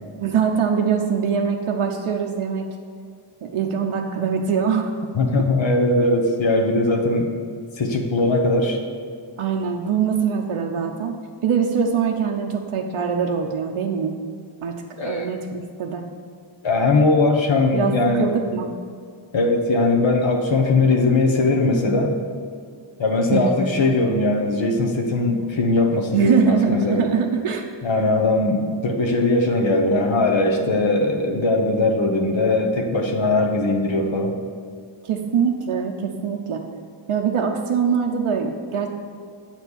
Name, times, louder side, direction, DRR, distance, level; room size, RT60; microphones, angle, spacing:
voice 1, 0.2-2.7 3.4-4.9 9.4-11.1 11.4-14.1 14.6-16.0 17.7-18.7 23.3-23.6 26.1-27.6 35.0-36.6 37.1-38.9, right 6 dB, 85° right, 1 dB, 0.8 m, -23 dB
voice 2, 5.1-7.3 7.8-8.8 15.0-15.3 16.6-18.3 19.3-22.1 23.0-27.1 27.8-34.4, left 2 dB, 65° left, 1 dB, 1.1 m, -20 dB
8.2 x 4.4 x 7.1 m, 2.2 s
wide cardioid pair, 105°, 49 cm